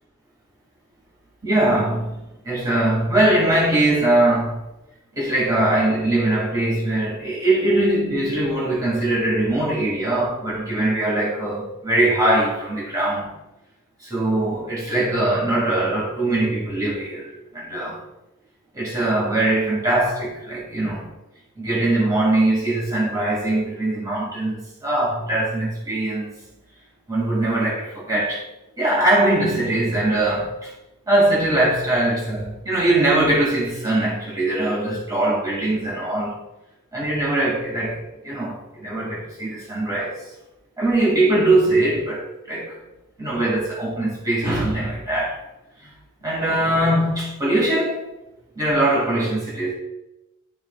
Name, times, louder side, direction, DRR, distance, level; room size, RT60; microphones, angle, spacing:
voice 1, 1.4-4.7 5.1-13.3 14.0-18.0 18.7-21.1 21.6-26.3 27.1-28.4 28.8-30.7 31.1-36.4 36.9-40.3 40.8-42.8 43.2-45.4 45.8-45.9 46.2-48.1 48.6-49.7, right 1 dB, 15° right, 2.4 m, -21 dB
12.0 x 4.9 x 2.4 m
head